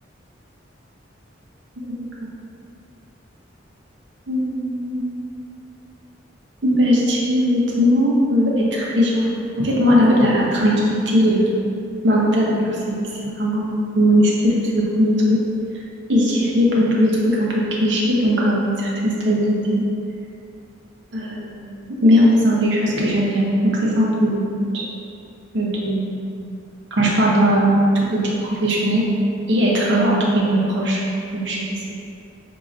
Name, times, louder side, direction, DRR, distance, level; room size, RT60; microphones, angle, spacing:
voice 1, 4.3-5.0 6.6-9.3 9.6-11.5 12.0-15.4 16.1-19.8 21.1-24.4 24.7-24.8 25.5-26.3 26.9-27.8 28.1-29.0 29.5-31.0 31.3-31.6, equal, 65° right, -4 dB, 0.7 m, -19 dB
5.0 x 2.8 x 2.5 m, 2.5 s
head